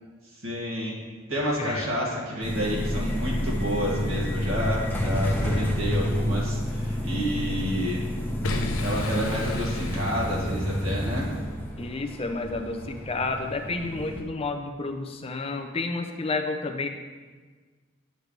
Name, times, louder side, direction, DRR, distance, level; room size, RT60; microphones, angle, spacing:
voice 1, 0.4-1.0 1.3-8.0 8.8-11.3, equal, 75° right, -4 dB, 2.1 m, -29 dB
voice 2, 1.6-1.9 11.8-16.9, left 3 dB, 25° left, 5 dB, 0.5 m, -30 dB
sound 1, 2.4-14.2, equal, 10° left, 0.9 m, -29 dB
Boom, 8.4-11.4, left 2 dB, 75° left, 0.8 m, -33 dB
10.5 x 6.6 x 3.3 m, 1.4 s
head